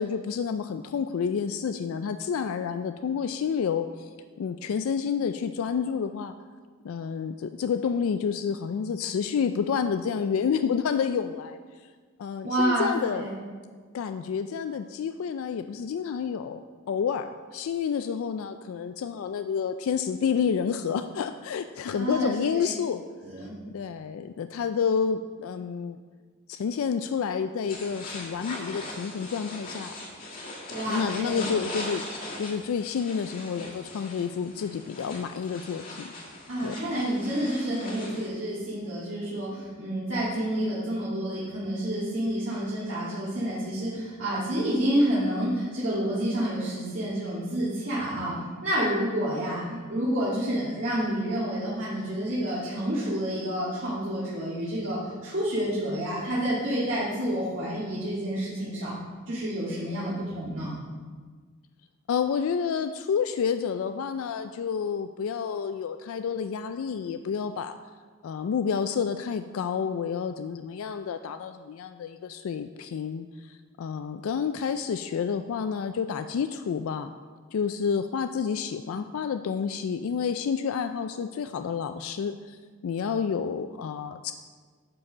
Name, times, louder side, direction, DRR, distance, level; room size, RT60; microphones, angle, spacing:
voice 1, 0.0-4.1 4.4-6.3 6.8-11.6 12.2-13.3 13.9-16.6 16.9-23.0 23.4-26.0 26.5-30.0 30.9-32.0 32.4-36.1 36.6-36.8 62.1-67.8 68.2-77.1 77.5-84.3, left 6 dB, 70° left, 10 dB, 0.3 m, -29 dB
voice 2, 12.4-13.4 21.9-22.7 23.2-23.6 30.7-31.5 36.5-58.9 59.3-60.7, right 1 dB, 55° right, -10 dB, 1.9 m, -29 dB
sound 1, 27.7-38.3, left 2 dB, 40° left, 1.8 m, -40 dB
9.9 x 4.8 x 6.1 m, 1.6 s
head